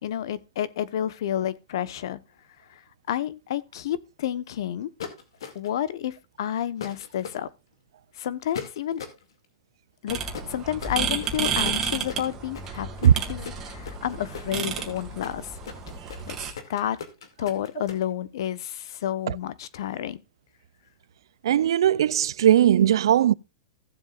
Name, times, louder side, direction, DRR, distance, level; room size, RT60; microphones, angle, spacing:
voice 1, 0.0-2.2 2.7-2.8 3.1-4.9 5.5-7.5 8.1-9.0 10.0-10.2 10.5-15.6 16.3-16.4 16.7-17.0 17.4-20.2, left 11 dB, 70° left, 1.0 m, -30 dB
sound 1, 5.0-5.8 6.8-7.4 8.5-9.2 10.3-18.0, left 7 dB, 90° left, 2.2 m, -39 dB
sound 2, 10.1-16.5, right 6 dB, 20° right, 2.3 m, -31 dB
voice 2, 21.4-23.3, right 10 dB, 85° right, 0.4 m, -18 dB
16.0 x 7.4 x 2.4 m
supercardioid pair, 155°, 2 cm